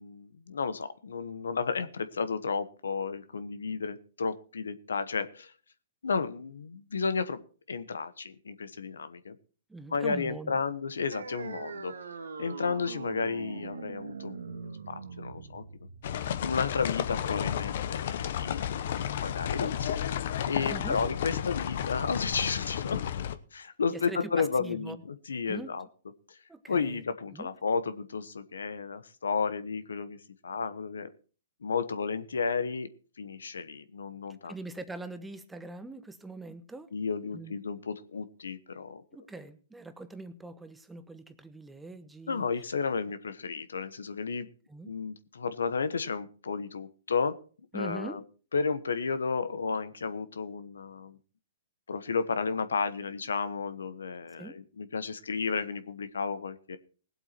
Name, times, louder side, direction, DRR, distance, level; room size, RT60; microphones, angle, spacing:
voice 1, 0.0-5.5 6.0-7.4 7.7-9.4 9.9-12.0 12.4-15.6 16.4-18.6 19.2-20.0 20.4-23.0 23.5-25.8 26.3-26.4 26.7-30.2 30.4-31.1 31.6-32.9 33.2-34.5 36.9-39.0 42.3-44.5 44.8-47.4 47.7-48.2 48.5-51.2 51.9-56.8, left 5 dB, 85° left, 13 dB, 1.1 m, -32 dB
voice 2, 9.7-10.6 20.7-21.0 23.9-25.0 25.5-25.7 26.5-27.0 27.3-27.5 34.4-36.9 37.2-37.6 39.1-42.5 44.7-44.9 47.7-48.2 54.3-54.6, right 2 dB, 5° right, 10 dB, 1.1 m, -42 dB
sound 1, 11.1-18.1, right 5 dB, 85° right, 1.8 m, -42 dB
sound 2, 16.0-23.3, left 9 dB, 60° left, 1.0 m, -32 dB
18.0 x 8.0 x 4.4 m, 0.40 s
hypercardioid pair, 130°, 0 cm